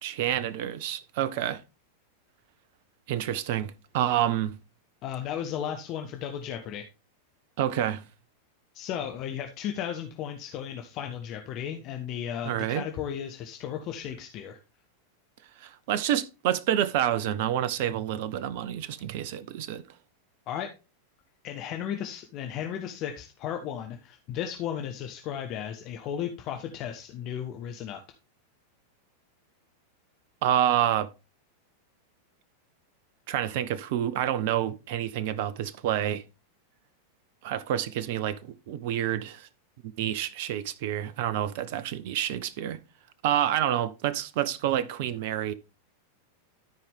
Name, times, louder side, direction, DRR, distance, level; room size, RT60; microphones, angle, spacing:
voice 1, 0.0-1.6 3.1-4.6 7.6-8.0 12.5-12.8 15.6-19.8 30.4-31.1 33.3-36.2 37.4-39.5 39.8-42.8 43.2-45.5, right 11 dB, 50° right, 0.7 m, -28 dB
voice 2, 5.0-6.9 8.7-14.6 20.5-20.7 21.4-28.0, left 9 dB, 40° left, 1.0 m, -35 dB
13.0 x 4.9 x 3.6 m
figure-of-eight pair, 90°, 0 cm